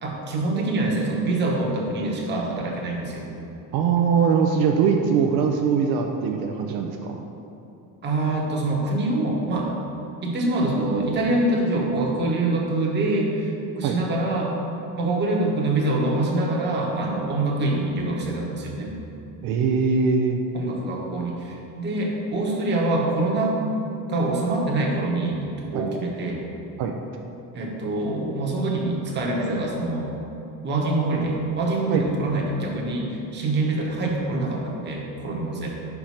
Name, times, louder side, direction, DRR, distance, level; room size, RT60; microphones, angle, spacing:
voice 1, 0.0-3.2 8.0-9.7 10.2-14.5 15.0-19.0 20.5-23.6 24.1-26.4 27.5-30.1 30.6-35.7, right 2 dB, 30° right, -2 dB, 1.0 m, -25 dB
voice 2, 3.7-7.3 13.8-14.0 19.4-20.4 25.7-25.9 26.8-26.9 31.9-32.0 35.5-35.6, right 6 dB, 75° right, 3 dB, 0.6 m, -22 dB
5.1 x 4.6 x 5.7 m, 2.9 s
cardioid pair, 155°, 37 cm